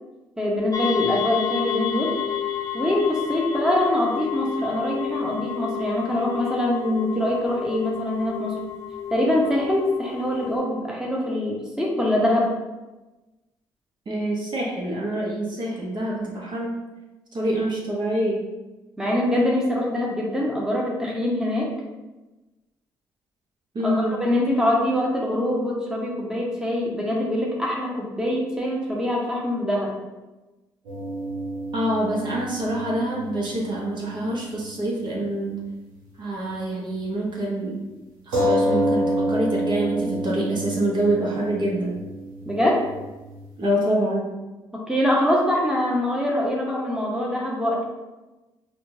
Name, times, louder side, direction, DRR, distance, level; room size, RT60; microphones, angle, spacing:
voice 1, 0.4-2.2 2.7-8.6 9.1-12.5 19.0-21.7 23.8-29.9 42.5-42.8 44.7-47.9, left 1 dB, 5° right, -3 dB, 0.9 m, -24 dB
sound 1, 0.7-10.6, left 9 dB, 35° left, 0.6 m, -30 dB
voice 2, 14.1-16.8 17.3-18.5 23.7-24.2 31.7-35.6 36.2-37.8 38.3-42.0 43.6-44.3, right 1 dB, 50° right, -3 dB, 1.0 m, -26 dB
sound 2, 30.8-34.7 35.0-35.1 38.3-43.5, equal, 80° right, 1.1 m, -28 dB
4.2 x 2.3 x 2.7 m, 1.1 s
hypercardioid pair, 50°, 10 cm